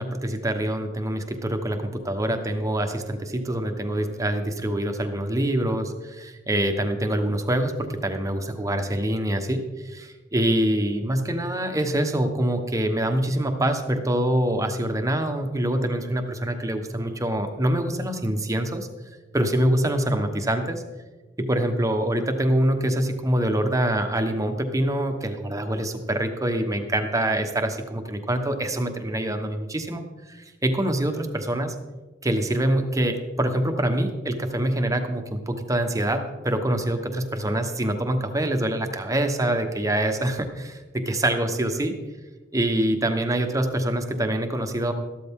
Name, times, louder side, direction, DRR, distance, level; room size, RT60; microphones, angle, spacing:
voice 1, 0.0-18.9 19.3-20.8 21.4-31.7 32.2-41.9 42.5-44.9, right 1 dB, 20° right, 6 dB, 1.1 m, -25 dB
13.5 x 12.5 x 3.7 m, 1.2 s
head